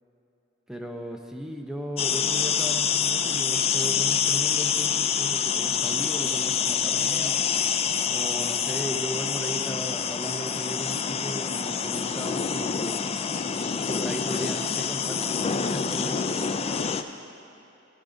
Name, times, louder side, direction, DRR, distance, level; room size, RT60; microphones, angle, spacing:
voice 1, 0.7-7.4 8.1-13.1 13.8-16.9, equal, 5° right, 1 dB, 0.6 m, -36 dB
sound 1, 2.0-17.0, left 7 dB, 30° left, 0.3 m, -26 dB
14.0 x 11.0 x 2.6 m, 3.0 s
head